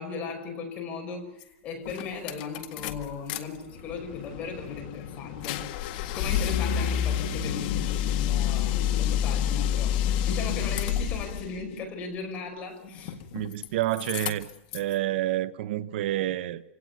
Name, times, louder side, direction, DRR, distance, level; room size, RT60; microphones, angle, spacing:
voice 1, 0.0-5.6 6.0-13.1, left 5 dB, 25° left, 5.7 m, -37 dB
sound 1, 1.4-1.5 1.9-3.4 3.7-11.5 13.0-13.7 13.9-14.9, left 9 dB, 45° left, 1.8 m, -29 dB
voice 2, 13.3-16.6, right 14 dB, 55° right, 0.9 m, -29 dB
26.5 x 17.5 x 9.5 m
supercardioid pair, 160°, 7 cm